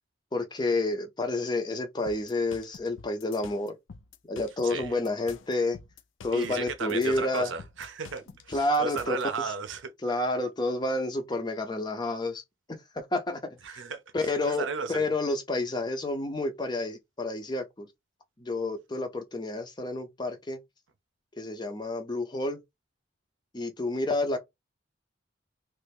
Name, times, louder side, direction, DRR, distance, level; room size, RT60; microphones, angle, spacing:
voice 1, 0.3-3.7 4.3-5.8 6.2-7.5 8.5-9.5 10.0-12.4 12.7-13.4 13.7-13.8 14.1-17.9 18.4-20.6 21.4-22.6 23.5-24.4, left 2 dB, 20° left, 0.5 m, -29 dB
sound 1, 2.1-9.2, left 5 dB, 75° left, 0.4 m, -48 dB
voice 2, 4.6-5.0 6.3-9.9 13.6-15.1, right 5 dB, 70° right, 0.6 m, -35 dB
3.1 x 2.4 x 3.4 m
head